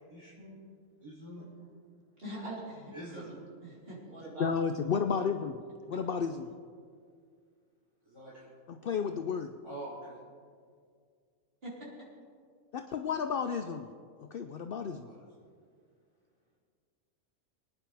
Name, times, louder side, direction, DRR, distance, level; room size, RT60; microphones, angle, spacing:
voice 1, 0.1-0.6 1.0-1.5 2.9-3.3 8.1-8.4 9.6-10.2 14.8-15.3, right 1 dB, 20° right, -9 dB, 3.4 m, -46 dB
voice 2, 2.2-4.5 11.6-11.9, right 1 dB, 45° right, -6 dB, 4.3 m, -43 dB
voice 3, 4.4-6.5 8.7-9.5 12.7-13.9 14.3-15.1, left 6 dB, 55° left, 7 dB, 0.6 m, -32 dB
24.0 x 9.9 x 3.5 m, 2.1 s
omnidirectional pair, 1.4 m